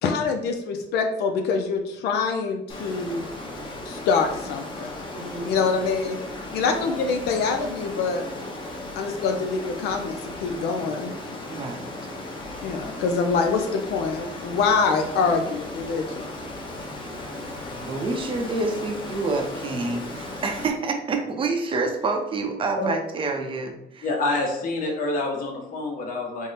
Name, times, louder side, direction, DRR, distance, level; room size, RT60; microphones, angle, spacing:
voice 1, 0.0-3.2 3.8-4.9 5.4-6.2 6.5-8.2 8.9-11.1 12.6-16.3, left 5 dB, 75° left, 4 dB, 0.5 m, -25 dB
Water, 2.7-20.7, left 1 dB, 30° left, 0.8 m, -36 dB
voice 2, 5.2-5.7 6.6-6.8 11.5-11.9 17.8-24.1, right 3 dB, 30° right, 4 dB, 0.6 m, -28 dB
voice 3, 24.0-26.5, left 2 dB, 55° left, 0 dB, 1.0 m, -27 dB
3.6 x 2.1 x 4.0 m, 0.87 s
cardioid pair, 110°, 17 cm